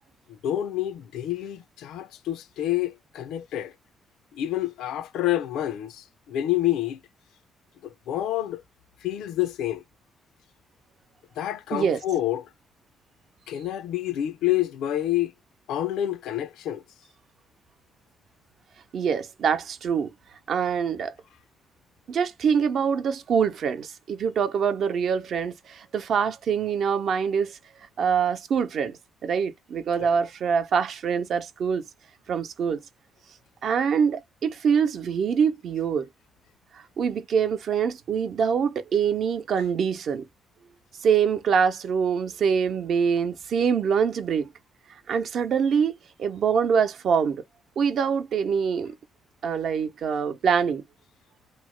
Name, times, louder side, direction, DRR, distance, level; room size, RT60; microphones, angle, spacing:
voice 1, 0.3-3.7 4.3-7.0 7.8-8.6 9.0-9.8 11.4-12.5 13.5-15.3 15.7-16.8 30.0-30.1, left 13 dB, 85° left, 0.5 m, -28 dB
voice 2, 18.9-20.1 20.5-21.1 22.1-27.6 28.0-31.9 32.3-32.8 33.6-36.1 36.7-40.2 41.0-44.5 45.1-47.4 47.8-48.9 49.4-50.8, right 7 dB, 65° right, 0.7 m, -24 dB
3.0 x 2.1 x 3.1 m
cardioid pair, 90°, 0 cm